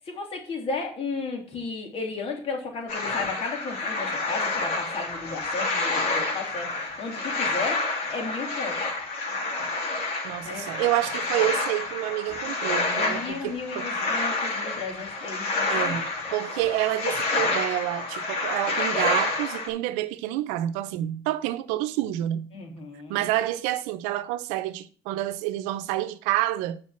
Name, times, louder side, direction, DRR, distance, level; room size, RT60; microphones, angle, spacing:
voice 1, 0.0-7.8 8.1-8.8 10.4-10.7 12.5-12.6 12.9-16.0 22.5-23.2, left 4 dB, 55° left, 3.2 m, -34 dB
sound 1, 2.9-19.7, left 3 dB, 70° left, 3.1 m, -29 dB
voice 2, 10.2-13.9 15.7-22.5 23.1-26.8, right 14 dB, 85° right, 0.7 m, -28 dB
7.4 x 5.3 x 7.1 m
supercardioid pair, 70°, 12 cm